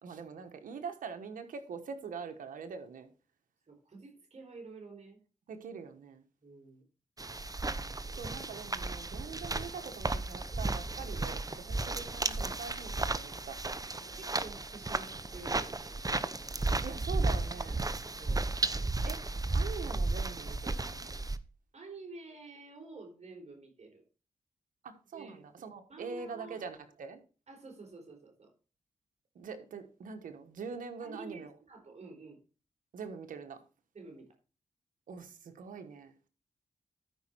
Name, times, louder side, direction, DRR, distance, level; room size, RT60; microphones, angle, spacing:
voice 1, 0.0-3.1 5.5-6.2 8.1-13.6 16.8-17.8 19.0-19.2 19.5-21.1 24.8-27.2 29.3-31.5 32.9-33.6 35.1-36.3, right 5 dB, 90° right, 7 dB, 1.2 m, -43 dB
voice 2, 3.7-5.2 6.4-6.8 14.0-16.1 18.1-18.5 21.7-24.0 25.1-25.5 25.9-26.7 27.5-28.5 31.0-32.4 33.9-34.3, right 3 dB, 55° right, 2 dB, 4.5 m, -49 dB
sound 1, 7.2-21.4, right 2 dB, 25° right, 0.9 m, -34 dB
13.0 x 5.5 x 4.5 m, 0.35 s
cardioid pair, 50°, 14 cm